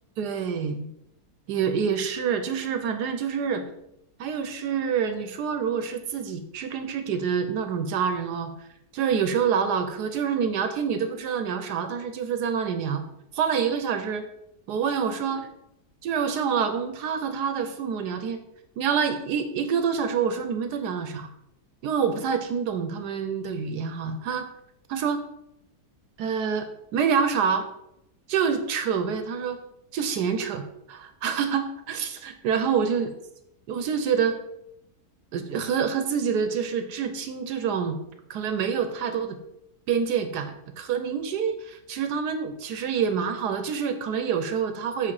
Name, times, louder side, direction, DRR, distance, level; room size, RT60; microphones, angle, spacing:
voice 1, 0.2-0.9 1.5-3.6 4.2-8.5 8.9-13.0 13.3-14.3 14.7-15.4 16.0-18.4 18.8-21.3 21.8-24.5 24.9-25.2 26.2-27.7 28.3-29.6 29.9-33.1 33.7-34.4 35.3-38.0 38.3-39.4 39.9-45.1, right 6 dB, 75° right, 8 dB, 1.2 m, -27 dB
7.7 x 3.8 x 4.8 m, 0.81 s
omnidirectional pair, 1.8 m